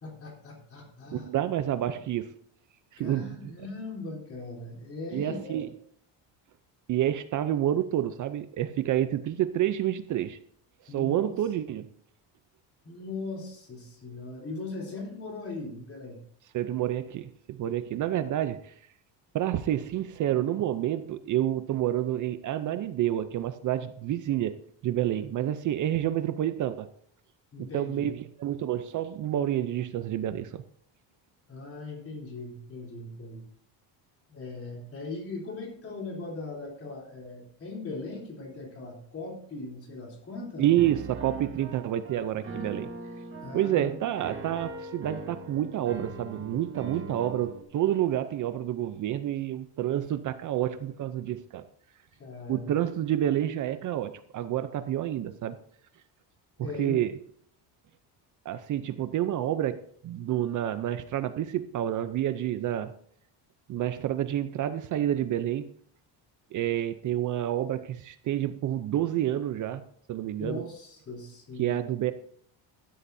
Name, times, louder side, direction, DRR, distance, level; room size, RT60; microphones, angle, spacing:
voice 1, 0.0-1.3 3.0-5.6 10.9-11.3 12.8-16.2 27.5-28.2 31.5-33.5 34.3-40.8 43.4-43.9 52.2-52.9 56.6-57.0 70.4-71.8, left 3 dB, 30° left, 3.9 m, -39 dB
voice 2, 1.1-2.3 2.9-3.4 5.1-5.7 6.9-10.4 10.8-11.9 16.5-18.7 19.3-26.9 27.6-30.6 40.6-42.9 43.5-51.6 52.5-55.6 56.6-57.2 58.5-62.9 63.7-65.7 66.5-69.8 70.1-70.7 71.6-72.1, right 12 dB, 45° right, 0.6 m, -29 dB
Piano, 40.8-47.6, right 3 dB, 30° right, 1.6 m, -41 dB
15.5 x 12.5 x 2.7 m
cardioid pair, 170°, 43 cm